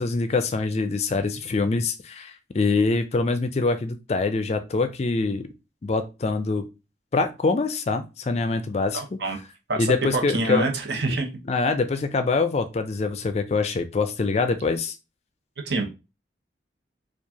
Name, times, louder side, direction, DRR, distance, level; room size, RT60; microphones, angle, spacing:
voice 1, 0.0-5.5 5.8-6.7 7.1-9.2 9.8-10.7 11.5-14.9, left 3 dB, 35° left, 10 dB, 0.4 m, -24 dB
voice 2, 8.9-9.4 9.7-9.9 10.3-11.3 15.6-15.9, right 2 dB, 75° right, 3 dB, 0.9 m, -26 dB
4.5 x 2.4 x 2.8 m, 0.27 s
head